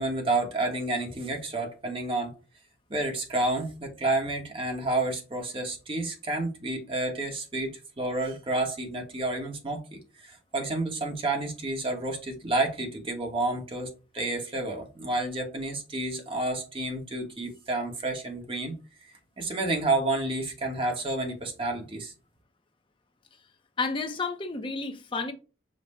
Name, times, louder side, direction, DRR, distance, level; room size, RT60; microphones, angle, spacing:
voice 1, 0.0-2.3 2.9-9.8 10.2-13.9 14.1-18.7 19.4-22.1, right 2 dB, 30° right, 0.9 m, -30 dB
voice 2, 23.8-25.3, left 4 dB, 25° left, 0.6 m, -31 dB
5.2 x 2.1 x 4.0 m
head